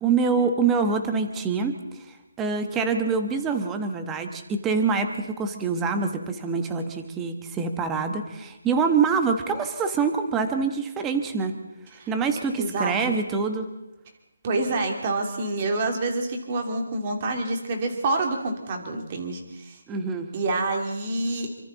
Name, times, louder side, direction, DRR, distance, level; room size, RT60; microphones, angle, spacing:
voice 1, 0.0-11.5 12.1-13.7 19.9-20.3, right 5 dB, 10° right, 6 dB, 1.2 m, -25 dB
voice 2, 12.6-13.1 14.4-19.8 20.3-21.5, right 2 dB, 25° right, 3 dB, 2.8 m, -27 dB
28.0 x 24.5 x 4.1 m, 0.96 s
hypercardioid pair, 175°, 0 cm